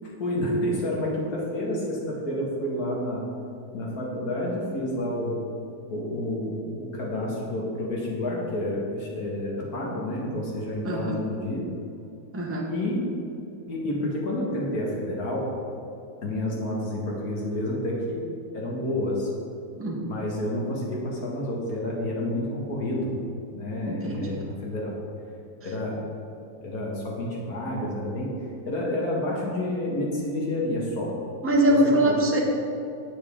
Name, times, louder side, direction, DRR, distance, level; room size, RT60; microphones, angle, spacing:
voice 1, 0.0-3.3 3.7-5.4 5.9-11.7 12.7-13.1 13.7-15.6 16.2-18.2 18.5-19.3 20.1-23.2 23.5-24.9 25.6-26.0 26.6-28.3 28.6-31.1 31.7-32.1, left 1 dB, 50° left, -3 dB, 2.1 m, -29 dB
voice 2, 10.8-11.2 12.3-12.7 19.8-20.1 23.8-24.4 31.4-32.4, right 1 dB, 15° right, -1 dB, 0.5 m, -23 dB
9.3 x 8.4 x 3.7 m, 2.7 s
omnidirectional pair, 2.1 m